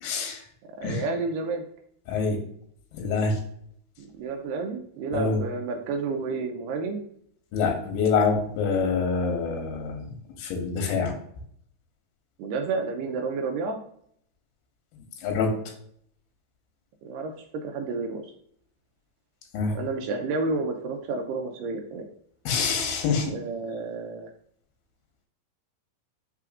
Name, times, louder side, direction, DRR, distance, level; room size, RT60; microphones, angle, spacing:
voice 1, 0.0-0.4 0.8-1.0 2.1-2.4 2.9-3.4 5.1-5.4 7.5-11.2 15.2-15.5 19.5-19.8 22.5-23.3, left 5 dB, 90° left, 2 dB, 2.6 m, -26 dB
voice 2, 0.8-1.6 4.0-7.0 12.4-13.8 17.0-18.3 19.7-22.1 23.3-24.3, right 4 dB, 80° right, 4 dB, 2.0 m, -30 dB
5.7 x 3.3 x 2.4 m, 0.66 s
omnidirectional pair, 4.1 m